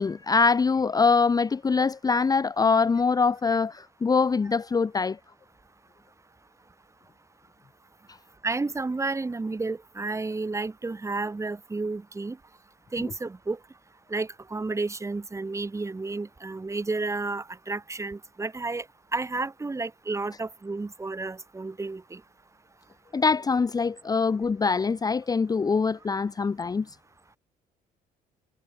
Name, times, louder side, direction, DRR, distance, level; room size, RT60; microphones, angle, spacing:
voice 1, 0.0-5.2 23.1-26.8, left 4 dB, 20° left, 0.8 m, -23 dB
voice 2, 8.4-12.4 12.9-13.6 14.1-18.9 19.1-22.2, right 3 dB, 15° right, 2.6 m, -31 dB
cardioid pair, 110°, 17 cm